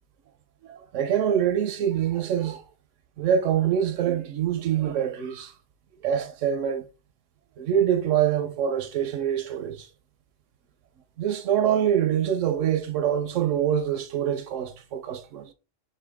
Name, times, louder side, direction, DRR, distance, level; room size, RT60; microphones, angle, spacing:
voice 1, 0.6-2.6 3.2-5.5 6.0-6.8 7.6-9.9 11.2-15.5, right 9 dB, 90° right, 1.1 m, -25 dB
5.4 x 2.2 x 3.5 m
omnidirectional pair, 1.3 m